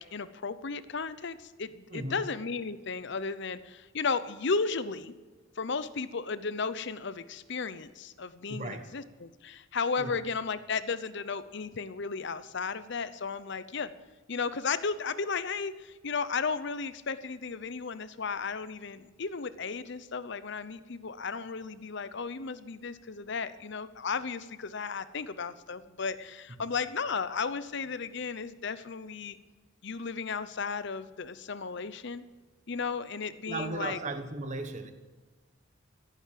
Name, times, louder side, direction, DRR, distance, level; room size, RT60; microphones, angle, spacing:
voice 1, 0.0-5.1 5.6-13.9 14.3-29.4 29.8-32.2 32.7-34.0, left 5 dB, 60° left, 0.8 m, -34 dB
voice 2, 1.9-2.3 8.5-9.0 10.0-10.2 33.5-34.9, right 2 dB, 35° right, 1.2 m, -36 dB
16.0 x 9.1 x 7.6 m
head